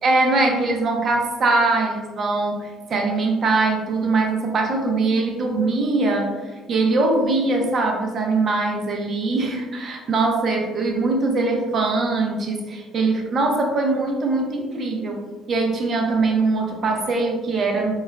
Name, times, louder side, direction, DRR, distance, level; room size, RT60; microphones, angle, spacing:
voice 1, 0.0-6.4 6.7-17.9, right 3 dB, 50° right, 2 dB, 0.7 m, -22 dB
4.0 x 2.3 x 2.2 m, 1.3 s
hypercardioid pair, 60°, 0 cm